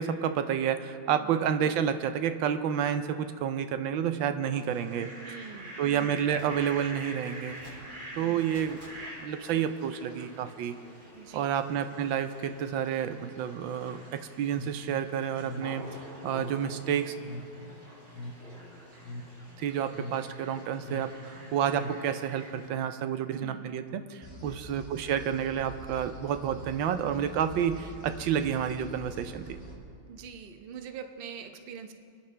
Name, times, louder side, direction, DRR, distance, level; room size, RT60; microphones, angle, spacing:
voice 1, 0.0-5.1 5.8-7.6 8.2-8.8 9.2-10.7 11.3-15.8 16.2-17.1 19.6-29.4, right 8 dB, 85° right, 9 dB, 1.4 m, -30 dB
Fowl, 4.5-22.7, equal, 65° right, 4.6 m, -47 dB
voice 2, 5.2-5.8 8.2-8.5 11.1-11.5 23.3-23.7 30.1-31.9, right 7 dB, 45° right, 6 dB, 0.7 m, -44 dB
sound 1, 14.5-22.4, left 1 dB, 55° left, 1.0 m, -43 dB
sound 2, 24.2-29.7, right 1 dB, 20° left, 2.6 m, -46 dB
29.5 x 10.0 x 3.3 m, 2.3 s
omnidirectional pair, 2.1 m